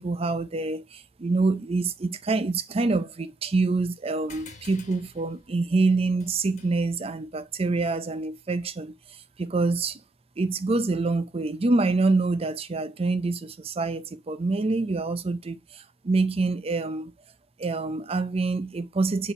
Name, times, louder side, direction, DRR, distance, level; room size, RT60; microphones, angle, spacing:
voice 1, 0.0-8.9 9.4-10.0 10.4-17.1 17.6-19.3, right 3 dB, 30° right, 0.5 m, -26 dB
sound 1, 4.3-9.2, left 4 dB, 35° left, 1.5 m, -52 dB
5.2 x 4.9 x 4.2 m
head